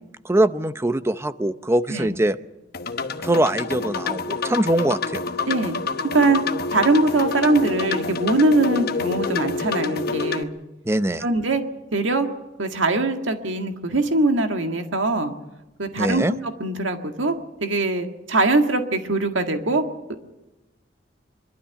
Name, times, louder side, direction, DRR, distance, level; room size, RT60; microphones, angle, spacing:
voice 1, 0.2-2.4 3.2-5.2 10.9-11.3 16.0-16.3, right 1 dB, 15° right, 12 dB, 0.7 m, -22 dB
sound 1, 2.7-10.4, left 4 dB, 55° left, 1.0 m, -27 dB
voice 2, 6.1-6.4 6.7-10.5 11.2-11.6 11.9-12.3 12.6-15.3 15.8-17.4 17.6-19.8, right 2 dB, 85° right, 5 dB, 1.8 m, -22 dB
25.0 x 12.5 x 10.0 m, 1.0 s
head